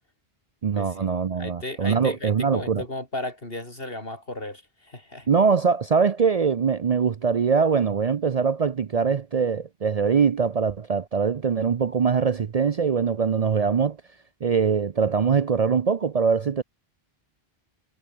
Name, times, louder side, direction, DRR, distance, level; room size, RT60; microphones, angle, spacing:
voice 1, 0.6-2.8 5.3-14.0 14.4-16.6, right 6 dB, 45° right, 0.6 m, -22 dB
voice 2, 1.4-5.3, left 1 dB, 65° left, 5.7 m, -35 dB
omnidirectional pair, 1.0 m